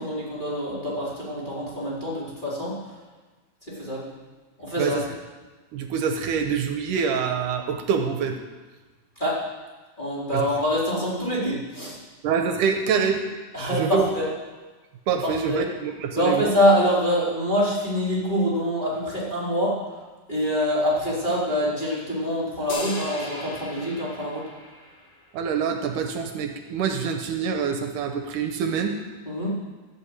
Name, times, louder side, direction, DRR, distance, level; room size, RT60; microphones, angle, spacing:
voice 1, 0.0-2.8 3.7-4.1 4.6-5.0 9.2-9.4 10.0-12.0 13.5-14.3 15.2-15.6 16.1-19.8 20.3-24.4 29.3-29.5, equal, 15° left, -8 dB, 4.3 m, -25 dB
voice 2, 5.7-8.4 10.3-10.4 12.2-13.2 13.6-14.1 15.1-16.5 25.3-29.0, right 6 dB, 80° right, 5 dB, 2.4 m, -25 dB
sound 1, 22.7-25.3, left 2 dB, 60° left, 3.7 m, -37 dB
14.0 x 8.0 x 8.1 m, 1.3 s
omnidirectional pair, 3.8 m